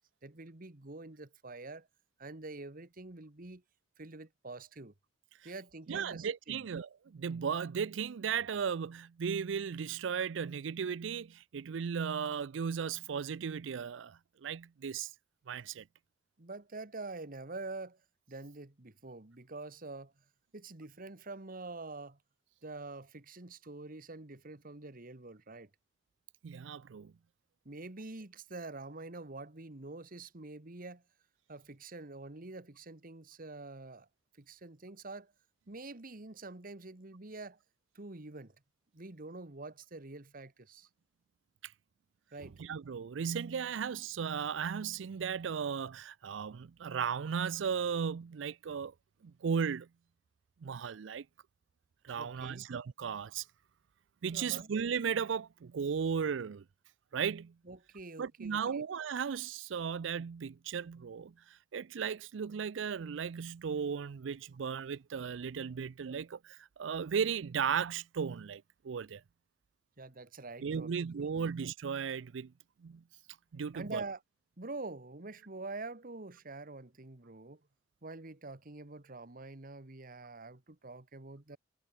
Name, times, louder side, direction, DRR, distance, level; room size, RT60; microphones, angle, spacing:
voice 1, 0.2-1.9 2.2-3.6 4.0-4.9 5.4-6.6 16.4-18.0 18.3-20.1 20.5-22.2 22.6-25.7 27.6-31.0 31.5-34.1 34.4-35.3 35.7-37.6 37.9-38.5 38.9-40.9 42.3-42.6 52.2-52.6 54.3-54.7 57.6-58.8 70.0-71.5 73.7-74.2 74.6-77.6 78.0-81.6, right 3 dB, 50° right, 1.6 m, -46 dB
voice 2, 5.9-15.1 15.5-15.9 26.4-27.1 41.6-41.7 42.6-48.9 49.2-49.9 50.6-51.3 52.0-53.5 54.2-56.6 57.1-57.5 58.2-69.2 70.6-72.5 72.8-73.0 73.5-74.0, right 7 dB, 85° right, 0.4 m, -36 dB
head